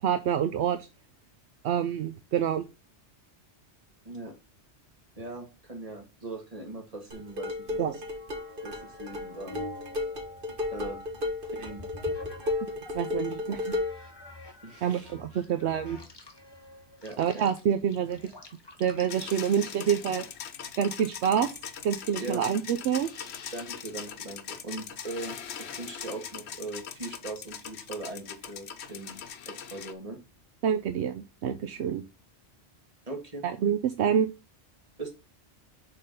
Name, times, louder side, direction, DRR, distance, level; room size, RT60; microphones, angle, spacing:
voice 1, 0.0-0.9 1.6-2.6 7.8-7.9 12.9-13.8 14.8-16.0 17.2-18.3 18.8-20.2 20.8-21.5 21.8-23.1 30.6-32.0 33.4-34.3, right 8 dB, 75° right, 8 dB, 0.9 m, -27 dB
voice 2, 5.2-7.8 8.6-9.7 10.7-11.0 11.4-11.9 14.6-15.4 17.0-17.5 22.2-22.4 23.5-29.2 29.5-30.2 33.1-33.4 35.0-35.2, right 2 dB, 35° right, 3 dB, 1.8 m, -40 dB
sound 1, 7.1-14.1, left 2 dB, 50° right, 1.6 m, -34 dB
sound 2, 8.1-13.1 13.6-20.3, left 2 dB, 25° left, 1.0 m, -47 dB
sound 3, 19.1-29.9, left 8 dB, 70° left, 1.0 m, -41 dB
6.5 x 3.9 x 5.2 m, 0.27 s
omnidirectional pair, 1.2 m